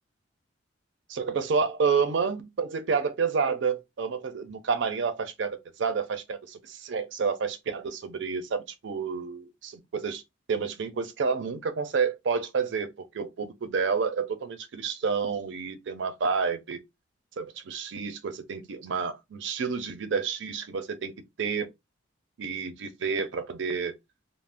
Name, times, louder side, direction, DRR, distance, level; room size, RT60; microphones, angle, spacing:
voice 1, 1.1-10.2 10.5-16.8 17.4-21.7 22.4-23.9, right 5 dB, 70° right, 0.4 m, -29 dB
2.5 x 2.0 x 3.3 m
head